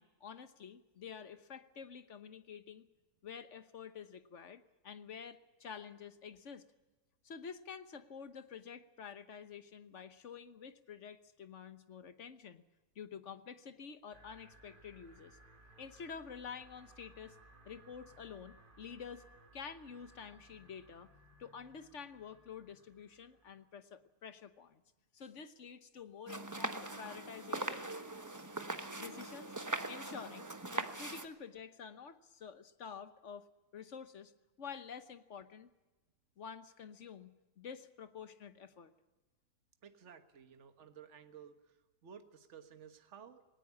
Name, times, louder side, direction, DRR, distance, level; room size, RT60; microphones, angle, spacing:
voice 1, 0.0-2.9 3.2-6.6 7.2-12.6 12.9-15.4 15.8-17.4 17.6-19.2 19.5-24.8 25.1-27.8 29.0-29.6 29.9-30.5 30.7-33.5 33.7-34.3 34.6-35.7 36.4-38.9, left 6 dB, 55° left, 12 dB, 1.3 m, -49 dB
sound 1, 14.1-23.6, right 2 dB, 30° right, 2.5 m, -62 dB
sound 2, 26.3-31.3, right 2 dB, 15° right, 1.0 m, -41 dB
voice 2, 39.8-43.6, right 7 dB, 50° right, 9 dB, 1.6 m, -55 dB
19.0 x 18.5 x 8.4 m, 1.1 s
omnidirectional pair, 1.6 m